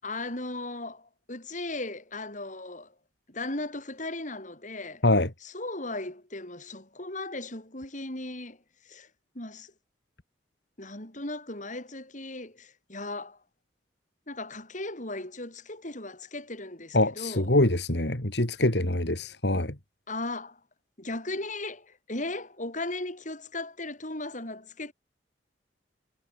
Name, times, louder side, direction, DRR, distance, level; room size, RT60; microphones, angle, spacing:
voice 1, 0.0-2.9 3.3-5.0 5.4-8.6 8.8-9.1 9.3-9.7 10.8-13.4 14.3-17.5 20.1-20.6 21.0-24.9, left 2 dB, 45° left, 7.4 m, -37 dB
voice 2, 16.9-19.8, left 1 dB, 75° left, 3.6 m, -24 dB
head